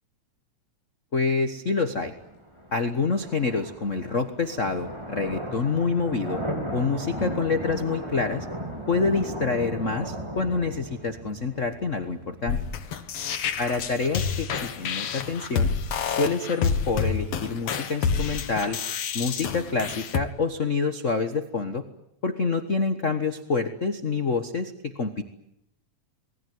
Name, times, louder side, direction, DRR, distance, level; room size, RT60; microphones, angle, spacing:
voice 1, 1.1-2.1 2.7-6.4 6.7-8.5 8.9-12.6 13.6-15.7 16.0-18.8 19.1-21.8 22.2-25.2, left 4 dB, 40° left, 8 dB, 1.1 m, -27 dB
sound 1, 1.8-15.7, right 1 dB, 10° right, 4.1 m, -36 dB
sound 2, 12.5-20.2, left 6 dB, 60° left, 2.4 m, -28 dB
28.0 x 20.5 x 9.5 m, 0.79 s
omnidirectional pair, 3.3 m